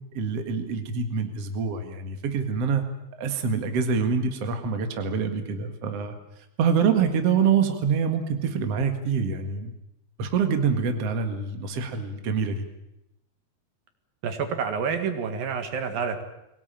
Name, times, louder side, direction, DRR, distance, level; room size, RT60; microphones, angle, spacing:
voice 1, 0.1-2.8 3.2-9.7 10.2-12.6, right 6 dB, 50° right, 6 dB, 2.6 m, -26 dB
voice 2, 14.2-16.2, right 6 dB, 80° right, 7 dB, 3.7 m, -28 dB
23.5 x 17.5 x 9.0 m, 0.87 s
omnidirectional pair, 4.0 m